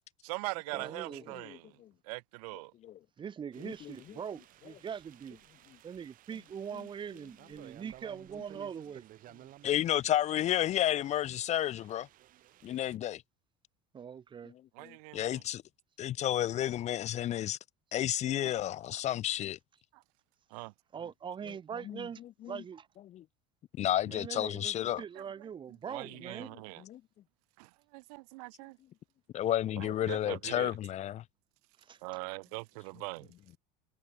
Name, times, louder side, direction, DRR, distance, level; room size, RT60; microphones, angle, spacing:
voice 1, 0.2-1.8 2.0-2.7 14.7-15.4 19.9-20.0 20.5-20.7 25.1-25.2 25.9-26.8 27.6-28.8 29.8-30.7 32.0-33.3, right 28 dB, 90° right, 1.3 m, -42 dB
voice 2, 0.7-1.4 3.2-5.4 5.8-9.0 13.9-14.5 18.4-18.5 18.9-19.0 20.9-22.2 22.5-22.9 24.0-26.5 31.8-32.0, right 7 dB, 25° right, 2.5 m, -42 dB
sound 1, 3.5-13.0, right 14 dB, 45° right, 8.0 m, -57 dB
voice 3, 9.6-12.1 12.6-13.2 14.8-15.6 16.0-17.6 17.9-19.6 21.9-22.0 22.4-22.5 23.1-23.2 23.8-25.0 26.9-27.0 29.3-31.2, left 12 dB, 35° left, 1.0 m, -31 dB
cardioid pair, 150°, 19 cm